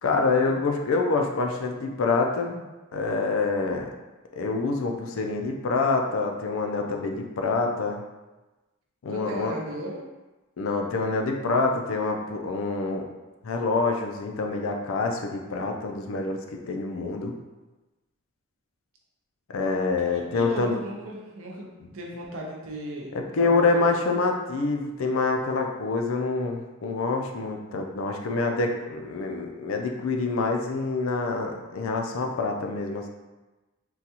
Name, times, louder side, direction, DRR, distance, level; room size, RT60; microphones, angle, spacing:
voice 1, 0.0-3.9 4.4-8.0 9.0-9.5 10.6-13.1 13.4-16.4 16.7-17.3 19.5-20.8 23.1-33.1, left 3 dB, 65° left, 3 dB, 0.4 m, -26 dB
voice 2, 9.1-10.0 19.9-23.9, right 1 dB, 70° right, -1 dB, 0.7 m, -37 dB
3.9 x 2.3 x 2.8 m, 1.1 s
head